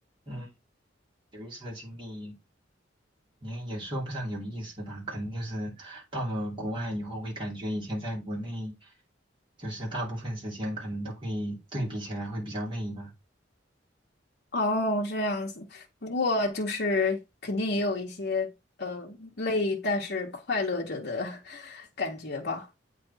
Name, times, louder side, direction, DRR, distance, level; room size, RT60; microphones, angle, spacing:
voice 1, 1.3-2.4 3.4-8.7 9.6-13.1, equal, 25° right, 2.7 m, -34 dB
voice 2, 14.5-18.5 18.8-22.7, left 2 dB, 55° left, 1.1 m, -29 dB
8.1 x 3.3 x 4.0 m
head